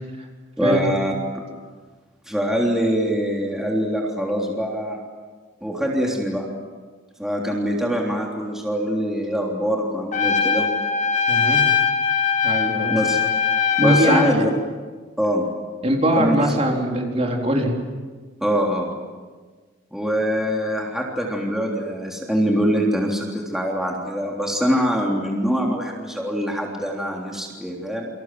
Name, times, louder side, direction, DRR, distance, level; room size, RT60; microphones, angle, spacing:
voice 1, 0.6-1.1 2.3-5.0 5.6-6.4 7.2-10.7 12.9-13.2 13.8-14.5 15.2-15.5 16.1-16.5 18.4-18.9 19.9-28.1, equal, ahead, -2 dB, 3.4 m, -23 dB
Trumpet, 10.1-14.4, left 6 dB, 40° left, 1.7 m, -21 dB
voice 2, 11.3-11.6 12.4-13.0 13.8-14.4 15.8-17.7, equal, 30° right, 1 dB, 4.1 m, -21 dB
29.5 x 26.0 x 7.7 m, 1.4 s
head